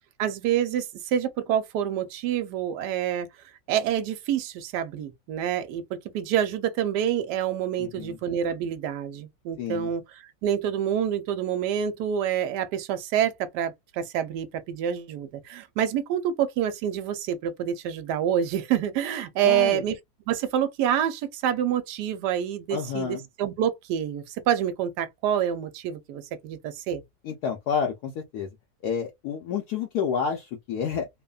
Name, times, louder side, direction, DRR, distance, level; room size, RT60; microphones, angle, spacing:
voice 1, 0.2-3.3 3.7-5.8 6.1-10.0 10.4-20.0 20.3-27.0, right 9 dB, 75° right, 1.1 m, -27 dB
voice 2, 7.8-8.2 9.6-9.9 19.4-19.8 22.7-23.2 27.2-28.5 28.8-31.1, left 7 dB, 70° left, 1.0 m, -29 dB
3.1 x 2.1 x 2.3 m
omnidirectional pair, 1.9 m